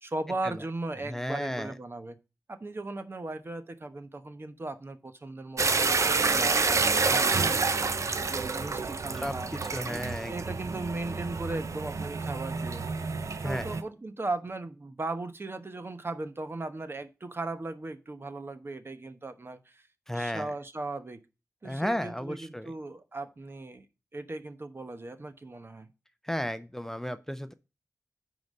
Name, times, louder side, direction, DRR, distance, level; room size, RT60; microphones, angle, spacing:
voice 1, 0.0-2.2 2.5-7.7 8.2-9.5 9.8-12.8 13.4-19.8 20.1-21.2 21.6-23.9 24.1-25.9, right 2 dB, 45° right, 1.0 m, -37 dB
voice 2, 1.1-1.7 9.2-9.3 9.7-10.5 13.4-13.7 20.1-20.5 21.6-22.7 26.2-27.5, equal, 5° left, 0.5 m, -33 dB
sound 1, 5.6-13.8, right 4 dB, 60° right, 0.7 m, -28 dB
9.6 x 4.0 x 5.3 m
cardioid pair, 50°, 6 cm